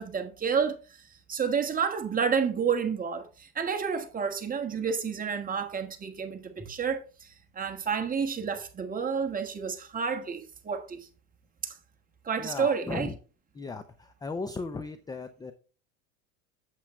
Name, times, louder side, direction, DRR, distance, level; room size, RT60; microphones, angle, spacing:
voice 1, 0.0-11.1 11.6-11.8 12.2-13.1, right 6 dB, 20° right, 1.5 m, -30 dB
voice 2, 12.4-13.2 13.6-15.5, left 3 dB, 10° left, 0.5 m, -36 dB
8.1 x 7.6 x 3.2 m
supercardioid pair, 110°, 42 cm